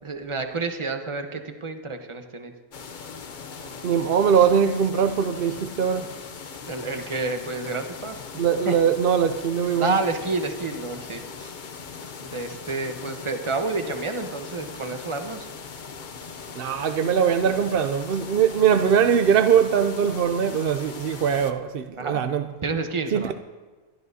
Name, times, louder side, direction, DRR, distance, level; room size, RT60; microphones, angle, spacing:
voice 1, 0.0-2.5 6.6-8.7 9.8-11.5 12.2-15.5 22.0-22.2 22.6-23.3, right 3 dB, 30° right, 1.0 m, -29 dB
sound 1, 2.7-21.5, left 5 dB, 50° left, 0.8 m, -40 dB
voice 2, 3.8-6.1 8.4-10.0 16.6-22.5 23.1-23.3, right 7 dB, 65° right, 0.7 m, -21 dB
23.5 x 12.5 x 2.7 m
omnidirectional pair, 1.1 m